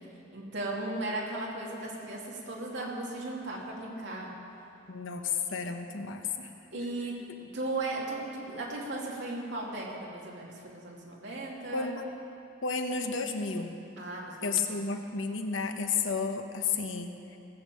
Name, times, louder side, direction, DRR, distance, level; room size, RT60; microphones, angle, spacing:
voice 1, 0.3-4.3 6.7-12.0 14.0-14.8, right 2 dB, 60° right, -3 dB, 2.6 m, -36 dB
voice 2, 4.9-6.5 7.3-7.4 11.7-12.0 12.6-13.8 14.4-17.4, left 5 dB, 75° left, 5 dB, 1.0 m, -32 dB
18.0 x 7.4 x 7.6 m, 2.7 s
head